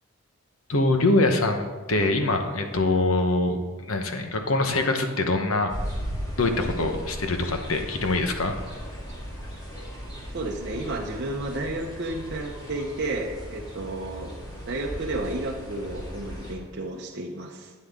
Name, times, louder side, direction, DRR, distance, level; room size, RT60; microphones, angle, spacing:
voice 1, 0.7-3.6 3.9-5.7 6.4-8.5, left 2 dB, 70° left, 5 dB, 1.0 m, -24 dB
sound 1, 5.7-16.5, equal, 20° left, 1.7 m, -37 dB
voice 2, 10.3-14.4 14.7-17.7, right 2 dB, 50° right, -1 dB, 0.7 m, -32 dB
11.5 x 8.6 x 3.6 m, 1.4 s
head